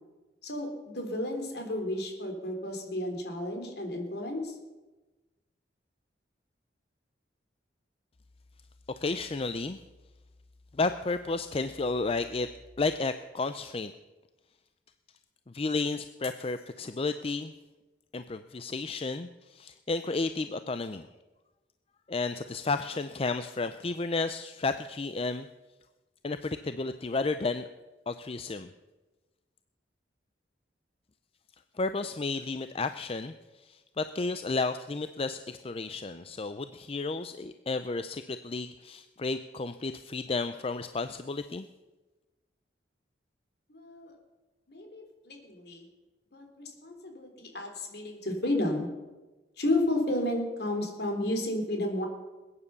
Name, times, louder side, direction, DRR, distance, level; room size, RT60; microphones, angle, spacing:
voice 1, 0.4-4.5 43.7-44.1 44.7-45.9 46.3-48.9 49.6-52.0, left 1 dB, 60° left, 3 dB, 3.4 m, -32 dB
voice 2, 8.9-9.8 10.7-12.5 12.8-13.9 15.5-17.5 18.1-21.1 22.1-25.5 26.2-27.7 28.1-28.7 31.7-41.7, left 3 dB, 30° left, 10 dB, 0.5 m, -32 dB
20.5 x 9.7 x 6.9 m, 1.2 s
head